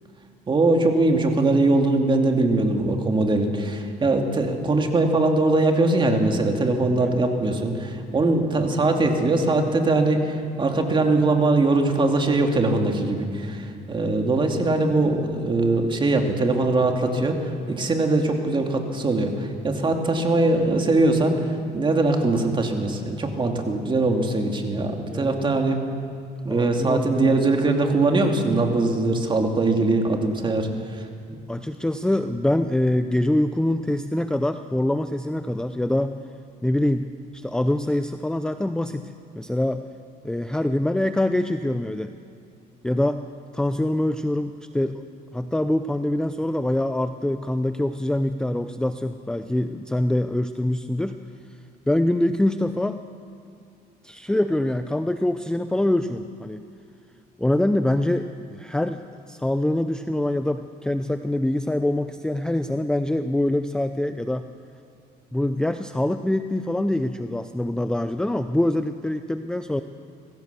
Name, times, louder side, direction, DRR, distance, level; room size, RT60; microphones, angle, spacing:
voice 1, 0.5-25.8 26.4-31.4, right 2 dB, 30° right, 3 dB, 2.6 m, -21 dB
voice 2, 26.5-27.3 31.5-36.2 36.6-37.1 37.3-39.8 40.2-42.1 42.8-43.2 43.5-45.0 45.3-51.2 51.9-53.0 54.0-56.7 57.4-64.5 65.3-69.8, left 1 dB, 5° left, 9 dB, 0.6 m, -24 dB
23.5 x 16.5 x 7.0 m, 2.4 s
cardioid pair, 110°, 17 cm